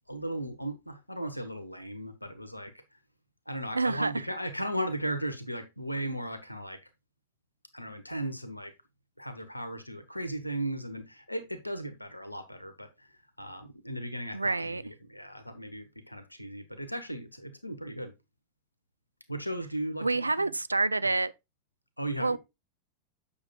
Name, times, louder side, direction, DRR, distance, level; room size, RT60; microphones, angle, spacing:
voice 1, 0.1-3.0 3.5-6.8 7.7-8.7 9.2-13.1 13.4-18.1 19.3-20.5 21.0-21.1 22.0-22.4, right 1 dB, 90° left, 1.1 m, -36 dB
voice 2, 3.7-4.1 14.3-14.8 20.0-21.3 22.2-22.4, right 3 dB, 80° right, 0.3 m, -27 dB
8.5 x 7.0 x 2.4 m
figure-of-eight pair, 90°, 0 cm